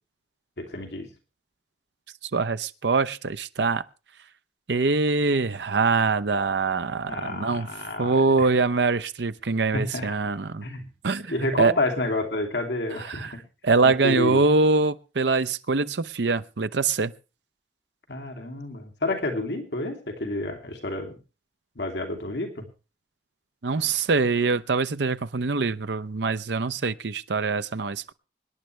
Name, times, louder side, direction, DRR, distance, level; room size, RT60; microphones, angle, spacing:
voice 1, 0.6-1.1 7.1-8.5 9.7-10.1 10.6-10.8 11.3-13.4 13.8-14.4 18.1-21.2 21.8-22.7, left 2 dB, 75° left, 2.7 m, -29 dB
voice 2, 2.3-3.8 4.7-7.7 8.0-10.7 11.0-11.7 13.1-13.3 13.6-17.1 23.6-28.1, right 4 dB, 75° right, 0.7 m, -24 dB
25.0 x 10.5 x 3.3 m
head